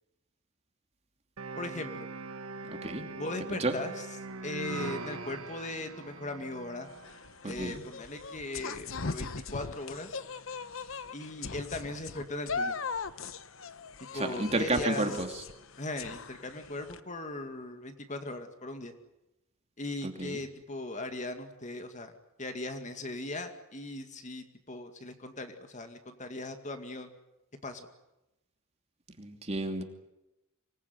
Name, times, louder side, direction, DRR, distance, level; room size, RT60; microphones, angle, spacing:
sound 1, 1.4-7.3, right 3 dB, 75° right, 1.6 m, -41 dB
voice 1, 1.6-2.1 3.2-4.1 4.4-6.9 7.4-10.2 11.1-12.8 14.1-15.2 15.8-18.9 19.8-22.1 22.4-27.1 27.6-27.9, left 2 dB, 35° left, 7 dB, 2.2 m, -38 dB
voice 2, 2.7-3.0 3.6-3.7 7.4-7.8 14.1-15.3 20.2-20.4 29.2-29.8, right 2 dB, 30° right, 5 dB, 2.8 m, -31 dB
sound 2, 6.9-17.0, left 4 dB, 65° left, 1.1 m, -40 dB
25.5 x 20.0 x 9.5 m, 0.94 s
head